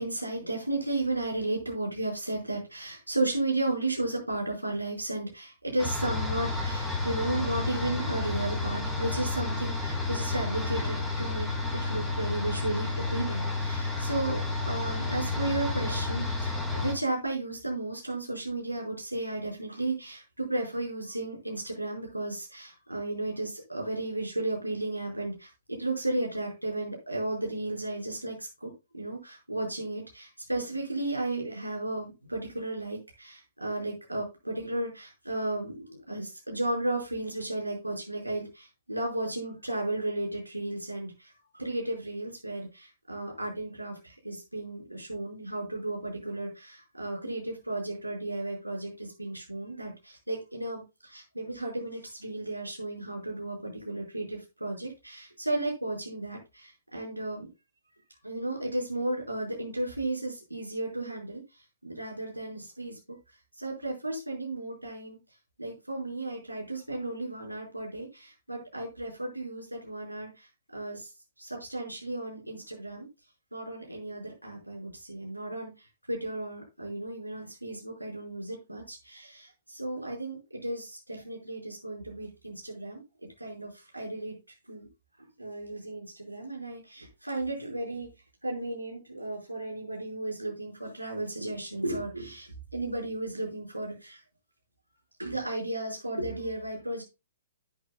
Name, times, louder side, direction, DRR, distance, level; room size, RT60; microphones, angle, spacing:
voice 1, 0.0-57.5 58.2-61.4 61.8-63.0 63.6-65.2 65.6-70.5 70.7-71.1 71.4-73.1 73.5-75.7 76.1-83.0 83.4-84.3 84.7-84.9 85.4-88.1 88.4-94.2 95.2-97.0, right 2 dB, 90° right, 0 dB, 5.0 m, -34 dB
sound 1, 5.8-16.9, left 3 dB, ahead, 3.8 m, -31 dB
11.5 x 10.0 x 2.2 m, 0.26 s
figure-of-eight pair, 120°, 0 cm